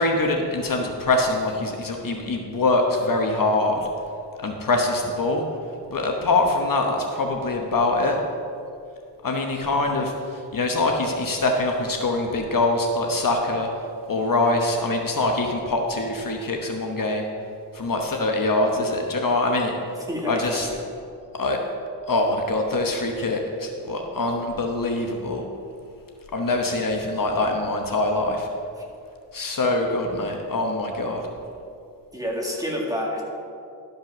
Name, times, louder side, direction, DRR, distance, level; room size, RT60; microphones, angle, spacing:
voice 1, 0.0-3.9 4.4-5.4 5.9-8.2 9.2-10.1 10.5-13.7 14.1-17.2 17.7-19.7 20.3-20.7 21.4-21.6 22.1-25.4 26.3-28.5 29.3-31.2, left 2 dB, 50° left, 2 dB, 1.0 m, -24 dB
voice 2, 20.0-20.8 28.8-28.9 32.1-33.2, equal, 10° right, -2 dB, 1.8 m, -29 dB
12.0 x 5.3 x 6.0 m, 2.5 s
wide cardioid pair, 110°, 41 cm